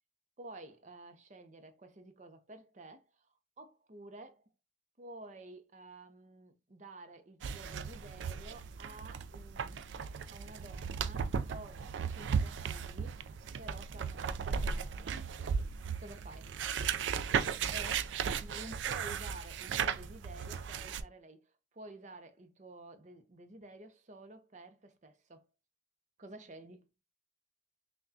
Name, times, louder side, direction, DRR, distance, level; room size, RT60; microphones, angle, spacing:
voice 1, 0.4-3.3 3.6-4.5 5.0-9.9 10.3-13.2 13.6-15.2 16.0-16.5 17.5-25.5 26.2-26.9, right 2 dB, 40° right, 0.6 m, -51 dB
sound 1, 7.4-21.0, right 6 dB, 85° right, 0.4 m, -36 dB
5.7 x 2.2 x 2.7 m
head